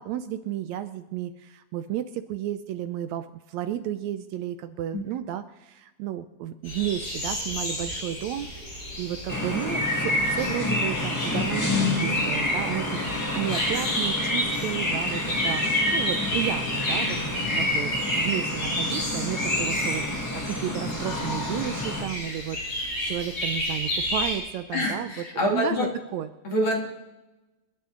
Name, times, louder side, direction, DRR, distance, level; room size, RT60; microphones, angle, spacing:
voice 1, 0.0-25.1 25.4-26.3, right 11 dB, 75° right, 10 dB, 1.8 m, -33 dB
sound 1, 6.6-24.3, left 1 dB, 65° left, 7.3 m, -32 dB
sound 2, 9.3-22.0, left 1 dB, 15° left, 0.8 m, -28 dB
voice 2, 24.7-25.9 26.4-26.8, left 1 dB, 45° left, 0 dB, 2.8 m, -25 dB
27.5 x 10.5 x 3.8 m, 1.1 s
omnidirectional pair, 3.4 m